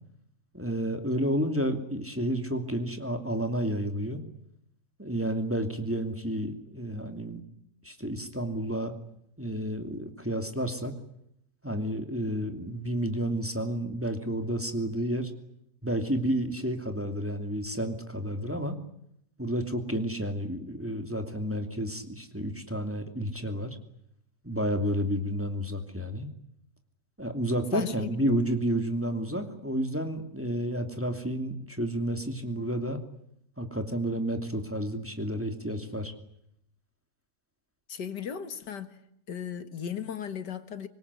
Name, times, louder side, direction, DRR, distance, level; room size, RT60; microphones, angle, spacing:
voice 1, 0.5-4.2 5.0-7.4 7.8-9.0 9.4-10.9 11.6-15.3 15.8-18.8 19.4-23.8 24.4-26.3 27.2-33.0 33.6-36.1, equal, 5° right, 6 dB, 2.6 m, -31 dB
voice 2, 27.7-28.2 37.9-38.9 39.3-40.9, left 8 dB, 80° left, 11 dB, 2.2 m, -36 dB
26.0 x 21.0 x 9.7 m, 0.74 s
omnidirectional pair, 1.8 m